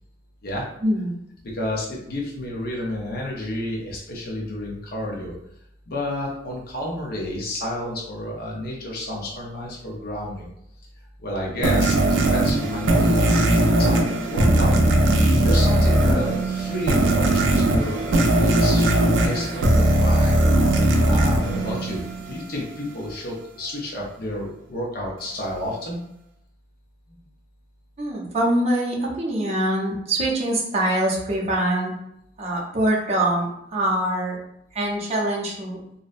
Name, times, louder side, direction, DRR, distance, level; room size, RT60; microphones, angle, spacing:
voice 1, 0.8-1.1 28.0-31.9 32.4-34.4 34.7-35.8, right 1 dB, 35° right, -3 dB, 0.6 m, -24 dB
voice 2, 1.4-5.3 5.9-10.5 11.2-14.7 15.4-20.4 20.7-26.0 27.1-27.2, left 1 dB, 55° left, -3 dB, 0.5 m, -30 dB
sound 1, 11.6-22.4, right 1 dB, 90° right, 0.4 m, -19 dB
2.6 x 2.0 x 2.4 m, 0.78 s
head